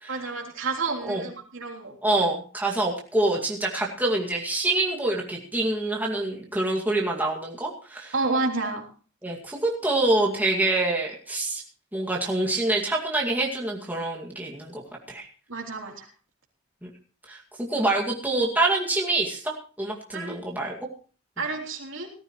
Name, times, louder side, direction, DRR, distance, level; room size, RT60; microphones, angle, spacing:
voice 1, 0.1-2.0 8.1-8.9 15.5-16.1 20.1-20.4 21.4-22.1, right 3 dB, 70° right, 1 dB, 3.5 m, -30 dB
voice 2, 2.0-8.1 9.2-11.6 11.9-14.8 15.1-15.3 16.8-16.9 17.3-20.8, right 2 dB, 10° right, -2 dB, 2.2 m, -26 dB
18.5 x 14.0 x 3.1 m, 0.38 s
head